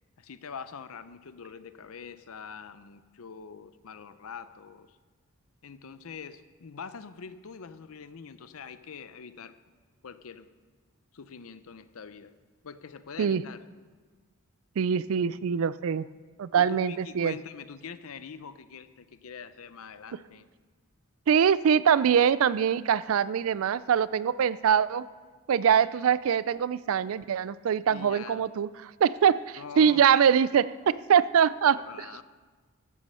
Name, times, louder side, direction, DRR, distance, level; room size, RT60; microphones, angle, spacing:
voice 1, 0.2-5.0 5.6-9.6 10.0-10.5 11.1-12.3 12.6-13.7 16.6-20.5 27.9-28.4 29.6-30.3 31.7-32.2, left 6 dB, 75° left, 13 dB, 0.6 m, -44 dB
voice 2, 14.8-16.1 16.4-17.3 21.3-25.1 25.5-32.1, right 7 dB, 75° right, 18 dB, 0.4 m, -23 dB
14.5 x 8.3 x 5.6 m, 1.4 s
head